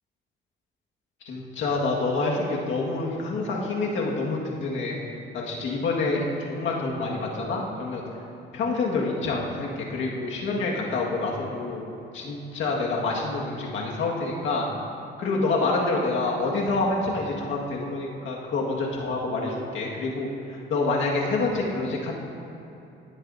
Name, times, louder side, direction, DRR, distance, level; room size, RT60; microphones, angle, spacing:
voice 1, 1.2-5.0 5.3-8.0 8.5-11.8 12.1-14.7 15.2-22.1, left 3 dB, 75° left, -2 dB, 1.8 m, -27 dB
17.0 x 8.3 x 2.7 m, 2.9 s
cardioid pair, 90°, 20 cm